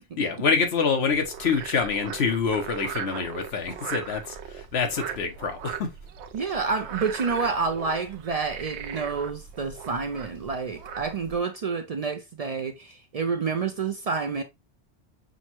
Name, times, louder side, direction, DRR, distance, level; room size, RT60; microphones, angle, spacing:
voice 1, 0.2-5.9, left 5 dB, 70° left, 1.1 m, -26 dB
Frog, 1.1-11.4, right 7 dB, 80° right, 0.8 m, -39 dB
voice 2, 6.3-14.4, right 5 dB, 55° right, 0.4 m, -29 dB
6.2 x 2.1 x 2.9 m
omnidirectional pair, 1.1 m